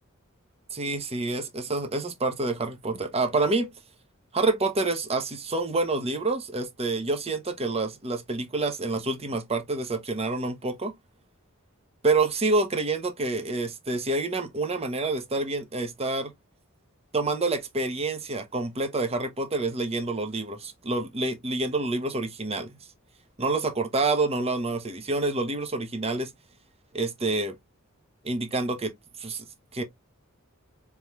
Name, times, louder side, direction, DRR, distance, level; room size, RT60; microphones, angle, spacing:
voice 1, 0.7-3.7 4.3-10.9 12.0-16.3 17.1-22.8 23.4-26.3 26.9-27.5 28.2-28.9 29.2-29.5 29.7-29.8, right 3 dB, 30° right, 0.9 m, -27 dB
4.4 x 3.5 x 2.3 m
head